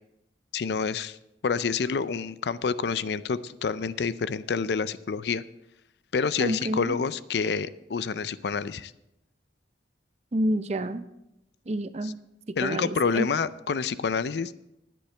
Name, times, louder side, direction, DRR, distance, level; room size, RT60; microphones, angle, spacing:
voice 1, 0.5-1.2 1.4-5.4 6.1-8.9 12.6-14.5, left 5 dB, 65° left, 16 dB, 0.4 m, -28 dB
voice 2, 6.4-7.0 10.3-11.0 11.7-12.2 12.5-13.3, right 1 dB, 35° right, 12 dB, 0.5 m, -29 dB
20.0 x 8.4 x 3.3 m, 0.87 s
head